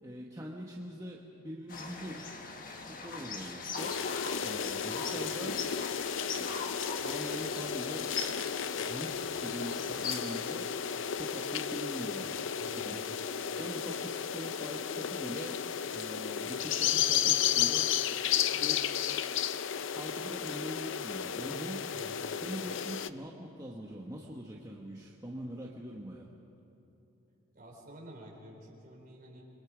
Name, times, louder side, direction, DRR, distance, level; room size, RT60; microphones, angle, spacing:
voice 1, 0.0-2.4 2.8-4.0 4.4-5.7 6.3-8.1 8.8-10.7 11.1-12.5 12.8-13.0 13.6-15.6 15.9-17.9 18.5-18.9 19.7-21.9 22.2-26.3, equal, 15° right, -3 dB, 1.3 m, -43 dB
sound 1, 1.7-10.2, left 4 dB, 40° left, 1.6 m, -41 dB
sound 2, 3.8-23.1, left 8 dB, 65° left, 0.5 m, -33 dB
voice 2, 12.6-13.3 21.9-22.4 27.5-29.5, right 1 dB, 45° right, -1 dB, 4.5 m, -50 dB
28.0 x 22.5 x 5.1 m, 2.9 s
head